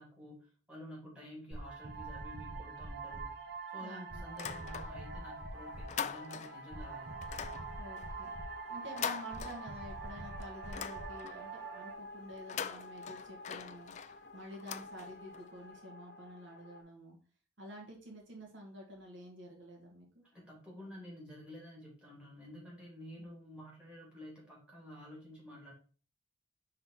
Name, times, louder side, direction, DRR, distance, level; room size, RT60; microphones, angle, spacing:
voice 1, 0.0-3.3 3.7-7.1 20.3-25.7, equal, 5° right, -5 dB, 2.8 m, -51 dB
sound 1, 1.5-11.9, right 3 dB, 55° right, 0.9 m, -44 dB
voice 2, 3.8-4.3 7.8-8.3 8.7-17.2 17.6-20.2, equal, 75° right, 0 dB, 1.6 m, -50 dB
sound 2, 4.3-5.2 5.5-6.7 7.2-10.1 10.4-11.5 12.3-15.5, left 8 dB, 35° left, 0.3 m, -43 dB
sound 3, 5.7-16.8, left 2 dB, 60° left, 0.9 m, -52 dB
5.5 x 3.8 x 4.6 m, 0.39 s
head